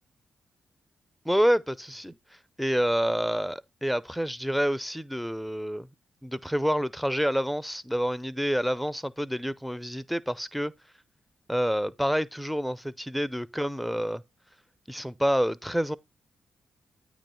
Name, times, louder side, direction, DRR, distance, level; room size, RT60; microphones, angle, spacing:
voice 1, 1.2-5.9 6.2-10.7 11.5-14.2 14.9-16.0, equal, ahead, 0.5 m, -28 dB
8.7 x 3.0 x 5.6 m
supercardioid pair, 50°, 3 cm